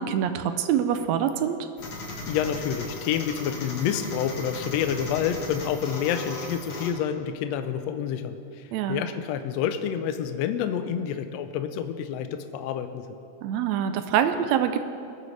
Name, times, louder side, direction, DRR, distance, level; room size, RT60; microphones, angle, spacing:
voice 1, 0.0-1.6 8.7-9.0 13.4-14.8, right 9 dB, 80° right, 8 dB, 1.6 m, -25 dB
sound 1, 1.8-6.9, left 3 dB, 50° left, 2.1 m, -37 dB
voice 2, 2.3-13.0, left 8 dB, 80° left, 8 dB, 1.6 m, -28 dB
20.5 x 9.3 x 3.3 m, 2.5 s
omnidirectional pair, 3.6 m